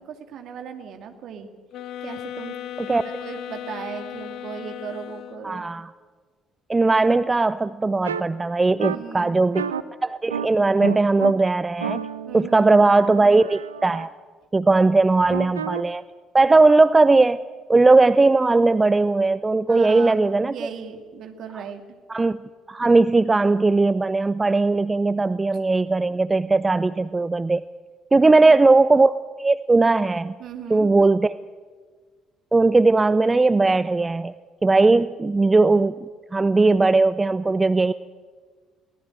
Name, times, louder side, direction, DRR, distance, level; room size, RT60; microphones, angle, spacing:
voice 1, 0.0-1.5 2.0-2.6 3.0-5.6 8.8-9.5 12.2-12.7 15.3-15.4 19.7-20.2 20.4-21.8 28.2-28.6 30.4-30.9, right 7 dB, 60° right, 6 dB, 2.3 m, -37 dB
sound 1, 1.7-5.6, left 12 dB, 60° left, 0.8 m, -36 dB
voice 2, 5.4-5.9 6.7-9.7 10.0-12.0 12.3-14.1 14.5-16.0 16.3-17.4 17.7-20.5 22.1-22.4 22.7-27.6 28.1-30.3 30.7-31.4 32.5-34.3 34.6-36.1 36.3-37.9, right 3 dB, 20° right, 16 dB, 0.6 m, -18 dB
sound 2, 8.0-8.2 8.8-9.0 9.5-9.8 10.3-10.5 10.8-11.3 11.8-14.0 15.3-15.8, right 7 dB, 85° right, 0.6 m, -30 dB
22.5 x 18.0 x 7.8 m, 1.5 s
figure-of-eight pair, 50°, 0 cm